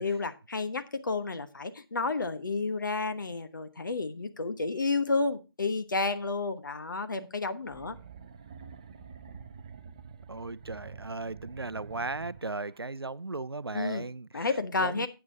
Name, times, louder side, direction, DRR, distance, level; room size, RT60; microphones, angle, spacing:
voice 1, 0.0-8.0 13.7-14.0 14.3-15.1, left 3 dB, 55° left, 1.2 m, -31 dB
sound 1, 7.7-12.9, right 6 dB, 15° right, 0.4 m, -48 dB
voice 2, 10.3-15.1, right 3 dB, 85° right, 0.5 m, -37 dB
13.5 x 8.6 x 2.7 m
figure-of-eight pair, 155°, 12 cm